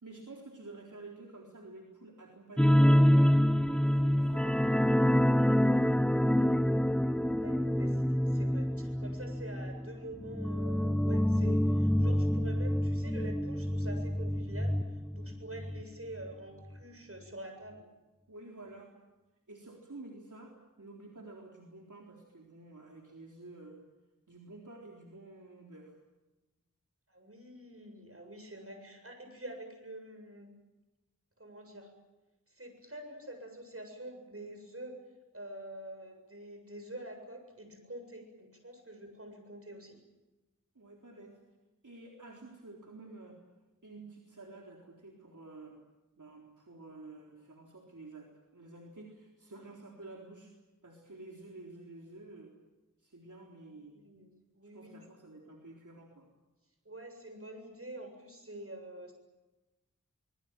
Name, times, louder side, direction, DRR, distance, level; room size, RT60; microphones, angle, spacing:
voice 1, 0.0-3.2 3.7-6.2 18.3-19.0 19.5-23.8 24.3-26.0 40.8-41.4 41.8-43.4 43.8-45.8 46.2-50.5 50.8-52.6 53.0-54.0 54.7-56.3, right 2 dB, 70° right, -1 dB, 3.9 m, -50 dB
sound 1, 2.6-15.8 16.1-16.3 16.7-16.8, equal, 5° left, 0.9 m, -27 dB
voice 2, 7.2-14.8 15.1-17.8 27.1-30.5 31.4-31.9 32.5-35.0 35.3-40.0 53.9-54.3 54.5-55.0 56.8-59.1, right 1 dB, 45° right, 5 dB, 7.5 m, -47 dB
25.5 x 21.0 x 9.0 m, 1.1 s
wide cardioid pair, 40°, 32 cm